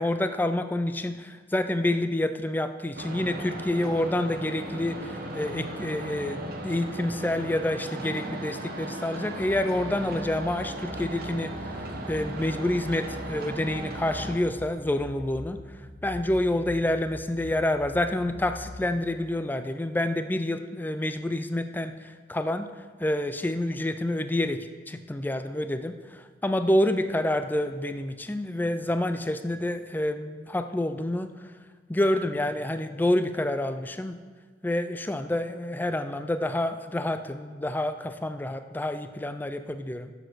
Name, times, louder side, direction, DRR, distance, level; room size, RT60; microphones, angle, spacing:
voice 1, 0.0-11.5 12.1-15.6 16.0-22.7 23.0-31.3 31.9-34.2 34.6-40.1, left 1 dB, 10° left, 10 dB, 0.3 m, -28 dB
sound 1, 2.9-14.4, right 1 dB, 50° right, 1.0 m, -37 dB
sound 2, 9.4-19.0, left 1 dB, 30° left, 0.8 m, -44 dB
6.9 x 6.4 x 6.2 m, 1.5 s
head